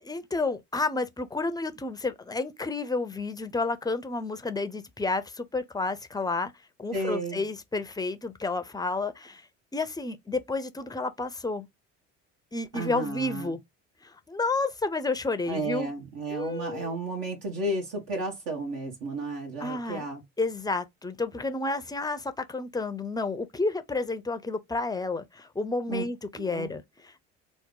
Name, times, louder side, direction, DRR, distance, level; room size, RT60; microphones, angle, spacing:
voice 1, 0.0-6.5 6.8-9.4 9.7-11.7 12.5-13.6 14.0-15.9 16.3-16.9 19.6-20.0 20.4-27.2, left 3 dB, 10° left, 0.5 m, -31 dB
voice 2, 6.9-7.4 12.7-13.5 15.5-20.2 25.9-26.0 26.4-26.7, right 2 dB, 70° right, 1.1 m, -33 dB
2.9 x 2.0 x 3.7 m
hypercardioid pair, 70°, 33 cm